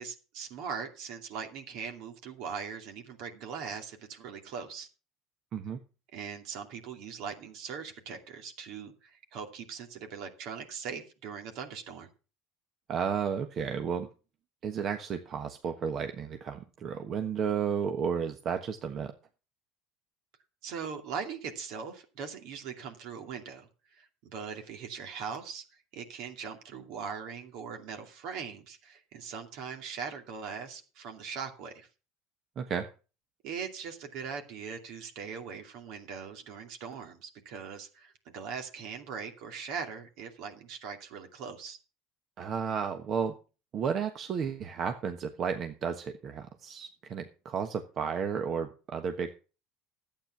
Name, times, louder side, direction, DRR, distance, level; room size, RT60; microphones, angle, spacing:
voice 1, 0.0-4.9 6.1-12.1 20.6-25.6 25.9-31.9 33.4-41.8, right 6 dB, 65° right, 5 dB, 2.5 m, -40 dB
voice 2, 12.9-14.1 14.6-19.1 32.6-32.9 42.4-43.3 43.7-49.4, right 7 dB, 50° right, 7 dB, 1.3 m, -33 dB
12.0 x 8.9 x 6.0 m, 0.34 s
hypercardioid pair, 80°, 0 cm